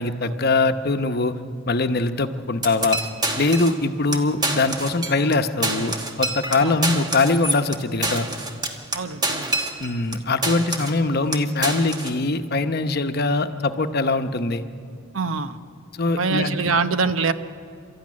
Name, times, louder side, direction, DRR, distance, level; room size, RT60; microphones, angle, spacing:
voice 1, 0.0-1.4 1.7-3.0 3.4-8.3 9.8-14.6 15.9-16.8, left 3 dB, 50° left, 8 dB, 0.9 m, -22 dB
sound 1, 2.6-3.8 4.1-4.2 4.4-5.4 5.6-10.2 10.4-11.0 11.3-12.2, right 2 dB, 20° right, 1.4 m, -27 dB
voice 2, 8.9-9.5 15.1-15.6 16.2-17.3, right 4 dB, 90° right, 10 dB, 0.9 m, -24 dB
29.0 x 13.0 x 9.7 m, 2.3 s
head